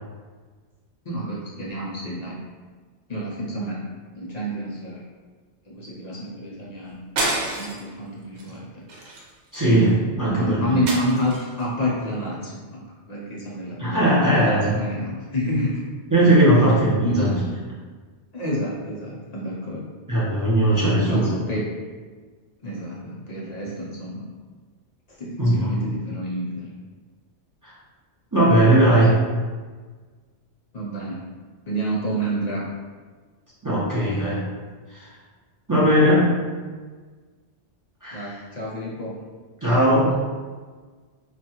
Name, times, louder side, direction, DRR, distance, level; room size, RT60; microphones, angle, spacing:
voice 1, 1.1-2.4 3.1-3.9 4.1-5.0 5.7-7.0 7.6-8.8 10.4-12.8 13.1-15.9 17.0-17.4 18.3-19.9 21.1-21.8 22.6-24.2 25.1-26.7 30.7-31.2 31.7-32.7 38.1-39.2, equal, 55° left, -5 dB, 0.5 m, -29 dB
sound 1, 7.2-7.9 8.4-8.6 8.9-9.9 10.9-11.6, right 2 dB, 75° right, 0.9 m, -28 dB
voice 2, 9.5-10.7 13.8-14.8 16.1-17.4 20.1-21.3 25.4-25.8 27.6-27.7 28.3-29.2 33.6-34.5 34.9-35.1 35.7-36.3 38.0-38.3 39.6-40.1, right 1 dB, 20° right, -10 dB, 0.7 m, -18 dB
3.4 x 2.3 x 2.8 m, 1.4 s
omnidirectional pair, 1.2 m